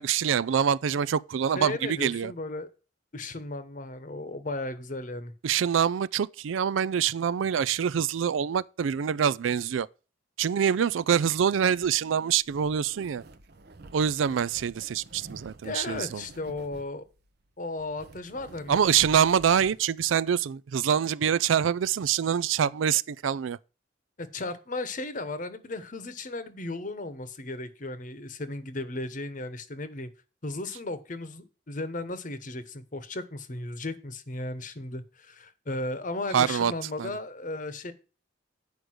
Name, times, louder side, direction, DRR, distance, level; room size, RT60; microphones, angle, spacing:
voice 1, 0.0-2.3 5.4-9.9 10.4-13.2 13.9-16.2 18.7-23.6 36.3-36.7 37.0-37.1, right 8 dB, 85° right, 0.4 m, -25 dB
voice 2, 1.5-2.7 3.1-5.3 15.6-17.0 17.6-18.8 24.2-30.1 30.4-37.9, left 2 dB, 45° left, 1.0 m, -35 dB
sound 1, 11.7-19.8, right 2 dB, 55° right, 0.8 m, -50 dB
9.6 x 5.1 x 6.2 m
head